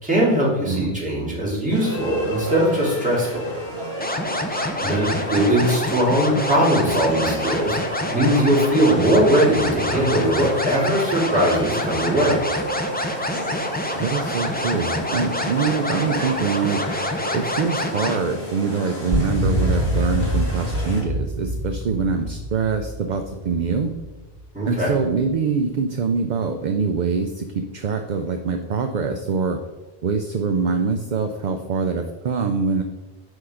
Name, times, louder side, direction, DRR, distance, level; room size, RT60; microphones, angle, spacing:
voice 1, 0.0-3.5 4.8-12.4 24.5-24.9, right 1 dB, 5° right, -7 dB, 2.7 m, -20 dB
voice 2, 0.7-1.0 14.0-16.8 17.3-23.9 24.7-29.6 30.0-32.8, right 5 dB, 55° right, 6 dB, 0.6 m, -24 dB
sound 1, 1.7-21.0, equal, 85° left, 3.0 m, -33 dB
sound 2, 4.0-18.2, left 1 dB, 10° left, 0.5 m, -27 dB
sound 3, 19.1-24.5, equal, 90° right, 1.8 m, -25 dB
6.3 x 5.7 x 4.9 m, 1.1 s
omnidirectional pair, 1.1 m